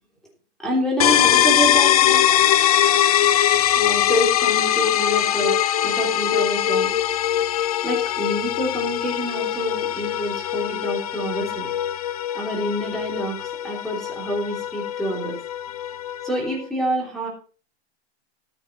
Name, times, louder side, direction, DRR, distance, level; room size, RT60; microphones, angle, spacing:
voice 1, 0.6-2.2 3.8-6.9 7.8-11.7 12.3-15.4 16.2-17.3, equal, ahead, 0 dB, 3.2 m, -27 dB
sound 1, 1.0-16.6, left 11 dB, 35° left, 0.5 m, -21 dB
14.5 x 6.5 x 5.7 m, 0.39 s
hypercardioid pair, 170°, 34 cm